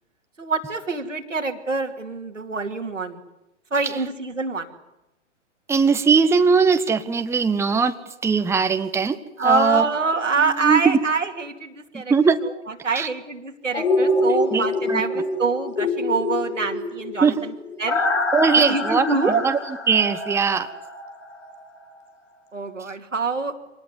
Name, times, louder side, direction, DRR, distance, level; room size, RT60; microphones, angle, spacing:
voice 1, 0.4-3.2 3.7-4.7 9.4-12.1 12.4-12.5 12.8-17.5 17.8-18.0 18.6-19.4 22.5-23.6, right 4 dB, 90° right, 4 dB, 2.7 m, -25 dB
voice 2, 5.7-9.2 9.4-9.8 10.6-11.0 11.9-12.4 12.9-13.1 14.5-15.0 17.2-17.5 18.3-19.2 19.4-19.6 19.9-20.7, right 5 dB, 5° right, 9 dB, 1.0 m, -20 dB
sound 1, 13.7-21.6 22.0-22.1, left 2 dB, 80° left, 4.8 m, -25 dB
25.0 x 19.0 x 9.7 m, 0.92 s
figure-of-eight pair, 105°, 37 cm